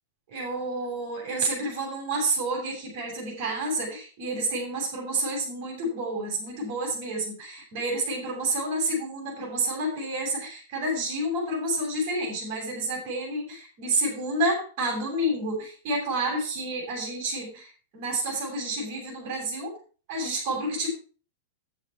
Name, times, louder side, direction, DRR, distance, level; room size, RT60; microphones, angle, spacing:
voice 1, 0.3-19.7 20.1-20.9, right 1 dB, 40° right, -1 dB, 7.2 m, -29 dB
10.5 x 9.6 x 4.8 m, 0.38 s
supercardioid pair, 160°, 0 cm